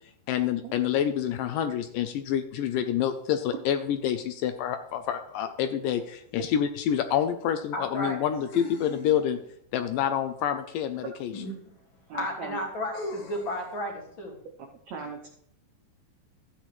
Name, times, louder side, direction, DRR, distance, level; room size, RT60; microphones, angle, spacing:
voice 1, 0.3-9.4 9.7-11.3, left 9 dB, 80° left, 8 dB, 2.1 m, -27 dB
sound 1, 6.4-6.5 8.5-9.5 11.3-11.4 12.9-13.7, left 2 dB, 55° left, 2.8 m, -39 dB
voice 2, 7.7-8.3 11.3-11.5 12.1-14.4, left 1 dB, 40° left, 0 dB, 2.2 m, -33 dB
voice 3, 12.1-12.6 14.9-15.3, right 5 dB, 75° right, 2 dB, 1.6 m, -38 dB
13.0 x 8.9 x 3.1 m, 0.69 s
omnidirectional pair, 4.2 m